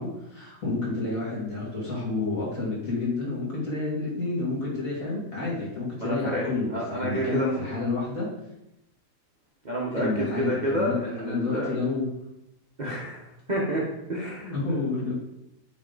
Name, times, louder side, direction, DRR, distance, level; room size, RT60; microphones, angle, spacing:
voice 1, 0.0-8.3 9.9-12.1 14.5-15.1, left 3 dB, 55° left, -6 dB, 2.6 m, -29 dB
voice 2, 6.0-7.6 9.6-11.7 12.8-13.2 13.5-13.8 14.1-14.5, equal, 30° right, -5 dB, 1.0 m, -29 dB
8.3 x 3.6 x 3.9 m, 0.88 s
omnidirectional pair, 1.7 m